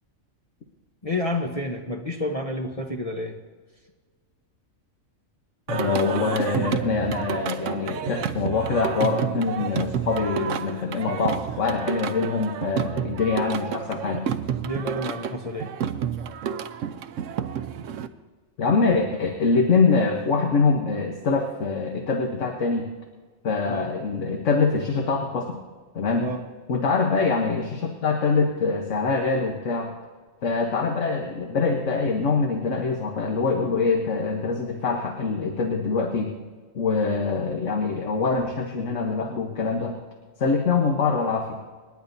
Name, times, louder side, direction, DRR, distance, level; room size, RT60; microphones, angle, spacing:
voice 1, 1.0-3.4 14.6-15.7 23.7-23.9 26.2-26.4, left 1 dB, 30° left, -1 dB, 0.9 m, -29 dB
voice 2, 5.7-14.3 18.6-22.9 23.4-25.6 25.9-26.3 26.7-29.9 30.4-36.3 36.7-40.0 40.4-41.6, left 4 dB, 65° left, 2 dB, 1.4 m, -24 dB
Singing, 5.7-18.1, right 8 dB, 70° right, 1.0 m, -30 dB
28.0 x 10.5 x 2.7 m, 1.4 s
omnidirectional pair, 1.4 m